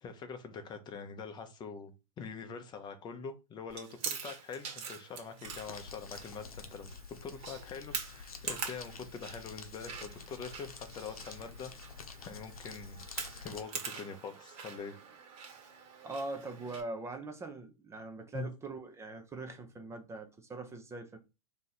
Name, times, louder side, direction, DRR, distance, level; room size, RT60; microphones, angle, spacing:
voice 1, 0.0-6.9 7.2-13.0 13.4-15.0 18.3-18.5, left 5 dB, 25° left, 0.7 m, -44 dB
Chewing mastication, 3.7-16.8, right 6 dB, 35° right, 1.2 m, -45 dB
Crumpling crinkling, 5.4-13.6, left 5 dB, 85° left, 0.8 m, -49 dB
voice 2, 16.0-21.2, right 3 dB, 15° right, 0.6 m, -42 dB
3.6 x 2.8 x 4.1 m
hypercardioid pair, 110°, 18 cm